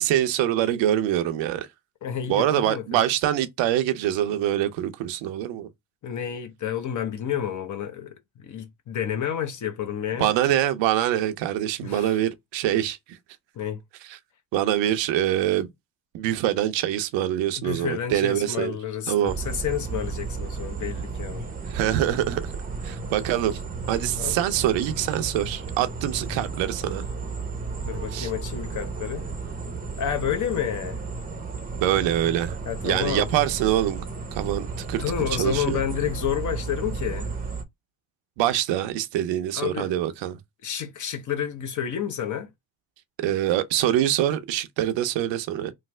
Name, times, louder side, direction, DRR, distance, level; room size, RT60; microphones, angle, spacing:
voice 1, 0.0-1.7 2.3-5.7 10.2-13.0 14.5-15.7 16.1-18.8 19.1-19.4 21.7-22.5 22.8-23.6 23.9-27.1 28.1-28.3 31.7-32.6 32.8-34.0 34.3-35.0 35.4-35.8 38.4-40.4 43.2-45.7, right 12 dB, 75° right, 0.7 m, -24 dB
voice 2, 2.0-3.0 6.0-10.3 11.8-12.2 13.5-13.8 17.6-21.5 24.2-24.4 27.8-29.3 30.0-31.0 32.7-33.3 35.0-37.3 39.5-39.9 40.6-42.5, left 9 dB, 45° left, 0.7 m, -30 dB
sound 1, 19.3-37.6, right 4 dB, 20° right, 0.7 m, -33 dB
3.2 x 2.0 x 3.2 m
cardioid pair, 95°, 44 cm